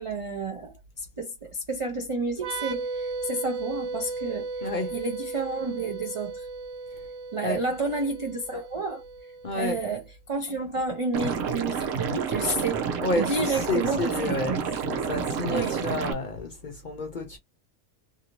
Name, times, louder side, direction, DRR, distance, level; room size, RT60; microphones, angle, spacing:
voice 1, 0.0-4.5 4.9-6.5 7.3-12.8 13.2-14.6 15.5-15.8, right 3 dB, 40° right, 0.5 m, -31 dB
sound 1, 2.4-9.9, right 3 dB, 60° right, 1.2 m, -35 dB
voice 2, 4.6-4.9 7.4-7.6 9.4-9.8 13.0-17.4, left 2 dB, 50° left, 0.6 m, -30 dB
Liquid, 11.1-16.1, right 6 dB, 85° right, 1.0 m, -29 dB
2.7 x 2.6 x 2.9 m
omnidirectional pair, 1.3 m